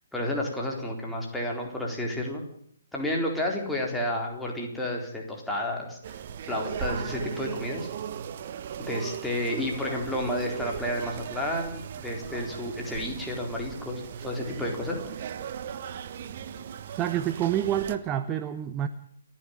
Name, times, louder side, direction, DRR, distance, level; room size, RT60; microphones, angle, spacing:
voice 1, 0.1-2.4 2.9-6.2 6.4-7.9 8.8-15.0, left 1 dB, 5° left, -2 dB, 4.1 m, -31 dB
sound 1, 6.0-18.0, right 8 dB, 40° right, 1.4 m, -38 dB
voice 2, 16.9-18.9, right 11 dB, 15° right, 10 dB, 0.9 m, -28 dB
29.5 x 10.5 x 9.0 m, 0.68 s
figure-of-eight pair, 135°, 0 cm